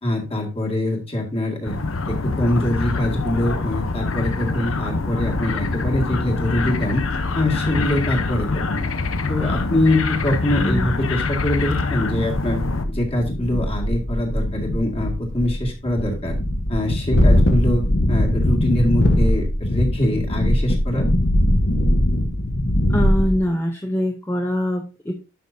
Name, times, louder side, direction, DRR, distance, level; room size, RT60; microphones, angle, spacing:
voice 1, 0.0-1.8 2.1-7.0 7.3-8.8 9.3-12.6 12.9-16.4 16.7-17.8 18.1-21.1, left 1 dB, 30° left, 1 dB, 2.1 m, -23 dB
sound 1, 1.6-12.9, left 3 dB, 80° left, 0.9 m, -25 dB
voice 2, 10.6-10.9 22.9-25.1, equal, 10° left, 2 dB, 0.7 m, -23 dB
sound 2, 12.3-23.4, left 1 dB, 55° left, 1.2 m, -20 dB
11.5 x 6.0 x 2.7 m, 0.29 s
head